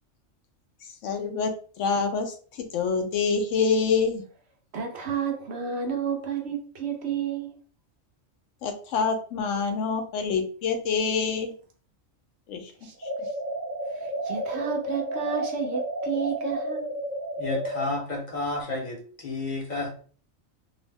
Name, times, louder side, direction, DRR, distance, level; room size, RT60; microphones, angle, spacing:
voice 1, 1.0-1.5 1.8-4.2 8.6-11.5 12.5-12.7, left 5 dB, 75° left, 5 dB, 0.9 m, -26 dB
voice 2, 4.7-7.6 12.8-12.9 13.9-16.9, right 7 dB, 65° right, 2 dB, 0.8 m, -31 dB
sound 1, 13.0-17.9, right 1 dB, 25° right, 0.3 m, -31 dB
voice 3, 17.4-19.9, left 2 dB, 45° left, -1 dB, 0.7 m, -31 dB
2.7 x 2.0 x 3.3 m, 0.42 s
omnidirectional pair, 1.3 m